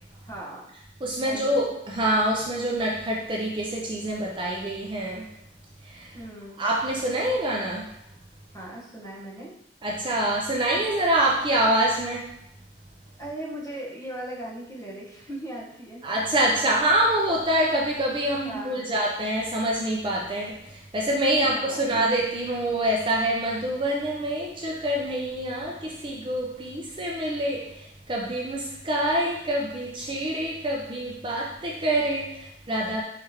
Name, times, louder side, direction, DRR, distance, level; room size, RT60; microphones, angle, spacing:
voice 1, 0.2-0.7 1.2-1.6 6.1-6.6 8.5-9.5 13.2-16.0 18.4-18.9 21.4-21.9, right 1 dB, 20° left, -7 dB, 1.5 m, -38 dB
voice 2, 1.0-5.3 5.8-6.2 6.6-7.9 9.8-12.3 16.0-33.0, right 1 dB, 30° right, -3 dB, 0.5 m, -26 dB
4.6 x 3.3 x 3.4 m, 0.82 s
head